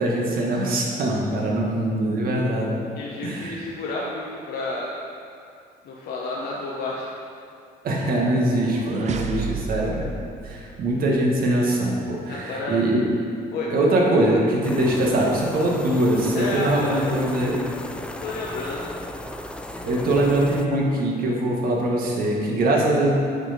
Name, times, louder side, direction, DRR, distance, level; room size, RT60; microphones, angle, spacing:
voice 1, 0.0-2.8 3.2-3.6 7.8-10.1 10.4-13.0 13.7-17.6 19.8-23.1, right 1 dB, 60° right, -2 dB, 1.7 m, -22 dB
voice 2, 3.0-5.0 5.8-7.1 12.3-12.8 13.5-13.7 16.3-17.2 18.0-18.9, left 2 dB, 65° left, -4 dB, 1.0 m, -30 dB
sound 1, 8.2-11.4, right 5 dB, 45° right, 0.5 m, -33 dB
sound 2, 14.6-20.7, left 1 dB, 5° left, 0.4 m, -35 dB
8.7 x 4.8 x 5.1 m, 2.4 s
cardioid pair, 110°, 17 cm